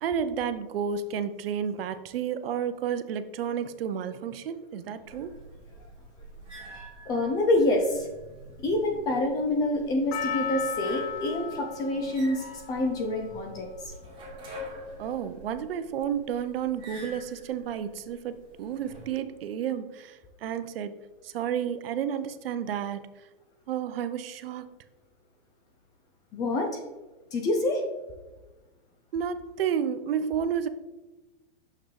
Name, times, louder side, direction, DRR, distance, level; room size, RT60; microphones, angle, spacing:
voice 1, 0.0-5.4 15.0-21.0 21.2-23.2 23.7-24.6 29.1-30.7, right 8 dB, 75° right, 12 dB, 0.6 m, -31 dB
sound 1, 5.1-19.1, equal, 15° right, 1.7 m, -46 dB
voice 2, 7.1-8.1 8.6-13.7 26.3-26.8 27.3-27.8, left 1 dB, 15° left, 4 dB, 0.3 m, -27 dB
Percussion, 10.1-14.5 15.1-15.2, left 8 dB, 45° left, 0.6 m, -36 dB
6.5 x 5.8 x 3.1 m, 1.2 s
hypercardioid pair, 145°, 29 cm